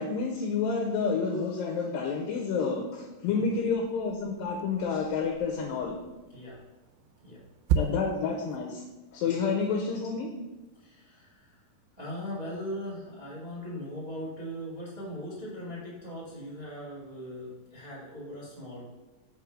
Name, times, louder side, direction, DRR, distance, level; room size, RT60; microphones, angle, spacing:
voice 1, 0.0-6.0 7.8-8.8 9.1-10.3, left 5 dB, 80° left, 1 dB, 2.3 m, -29 dB
sound 1, 3.6-8.6, right 6 dB, 85° right, 2.4 m, -35 dB
voice 2, 10.7-11.6 12.0-18.9, equal, 55° right, -8 dB, 0.4 m, -40 dB
5.4 x 4.6 x 6.2 m, 1.1 s
omnidirectional pair, 4.2 m